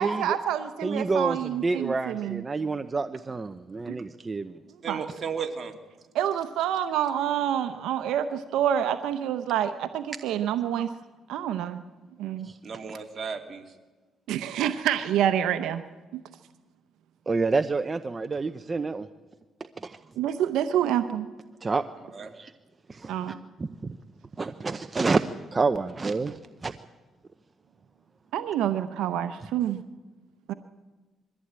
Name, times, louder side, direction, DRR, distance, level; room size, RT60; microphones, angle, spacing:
voice 1, 0.0-2.4 3.9-4.0 4.9-5.0 6.1-10.9 11.3-11.8 12.2-12.5 14.3-15.8 16.1-16.2 20.2-21.3 23.1-23.4 28.3-29.8 30.5-30.6, right 10 dB, 85° right, 10 dB, 0.8 m, -27 dB
voice 2, 0.8-4.6 12.4-12.6 17.3-19.1 19.8-20.0 21.6-21.8 22.2-22.5 22.9-24.0 24.4-25.2 25.5-26.7, right 4 dB, 30° right, 10 dB, 0.7 m, -28 dB
voice 3, 4.8-5.7 12.6-13.6 22.1-22.3, right 6 dB, 45° right, 4 dB, 2.6 m, -34 dB
21.5 x 15.0 x 8.9 m, 1.3 s
cardioid pair, 90°, 0 cm